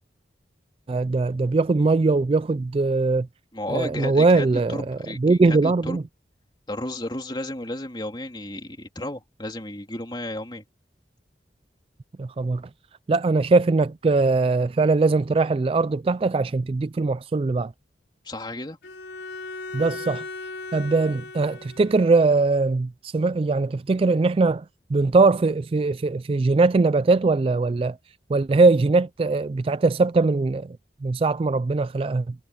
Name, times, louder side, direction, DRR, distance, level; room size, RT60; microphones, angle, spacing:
voice 1, 0.9-3.3 3.7-6.0 12.2-12.6 13.1-17.7 19.7-20.2 20.7-24.6 24.9-27.9 28.3-30.7 31.0-32.3, right 3 dB, 30° right, 0.3 m, -21 dB
voice 2, 3.5-6.0 6.7-10.6 18.2-18.8, left 1 dB, 25° left, 3.1 m, -33 dB
Bowed string instrument, 18.8-22.3, left 3 dB, 75° left, 4.2 m, -37 dB
head